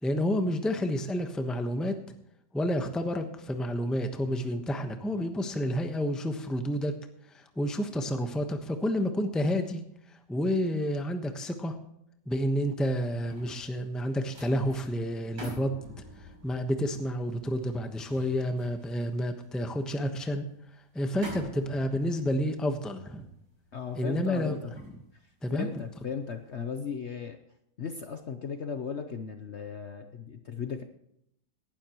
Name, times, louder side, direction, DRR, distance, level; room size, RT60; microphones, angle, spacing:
voice 1, 0.0-2.0 2.5-6.9 7.3-9.8 10.3-11.7 12.3-15.9 16.4-20.4 20.9-23.3 24.0-24.6 25.4-25.7, equal, ahead, 6 dB, 0.8 m, -30 dB
sound 1, 12.8-26.1 26.5-26.8, equal, 80° right, 6.2 m, -48 dB
voice 2, 23.7-24.7 25.5-27.4 27.8-30.8, left 6 dB, 50° left, 7 dB, 0.9 m, -36 dB
18.0 x 12.0 x 3.1 m, 0.76 s
omnidirectional pair, 1.8 m